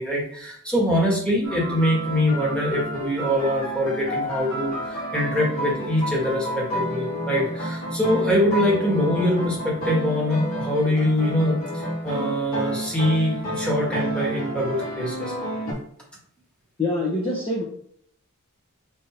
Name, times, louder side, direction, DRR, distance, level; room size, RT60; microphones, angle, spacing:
voice 1, 0.0-15.3, equal, 5° left, -4 dB, 1.5 m, -23 dB
sound 1, 1.4-15.7, equal, 75° left, 1.9 m, -30 dB
voice 2, 16.8-17.7, left 2 dB, 25° left, -6 dB, 0.9 m, -25 dB
4.6 x 3.5 x 3.0 m, 0.64 s
head